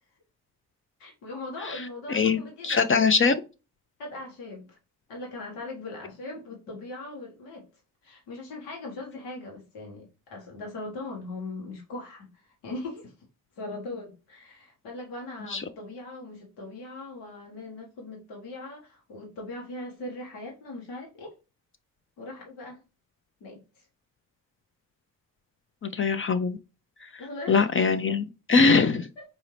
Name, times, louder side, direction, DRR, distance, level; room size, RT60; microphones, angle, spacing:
voice 1, 1.0-3.1 4.0-4.8 5.1-7.7 8.0-13.1 13.6-21.3 22.2-22.8 23.4-23.9 27.2-27.8 29.2-29.3, left 2 dB, 90° left, -1 dB, 1.2 m, -40 dB
voice 2, 2.1-3.4 15.5-15.6 25.8-26.6 27.0-27.1 27.5-29.1, left 4 dB, 30° left, 9 dB, 0.5 m, -22 dB
4.1 x 2.7 x 3.0 m, 0.30 s
supercardioid pair, 50°, 40 cm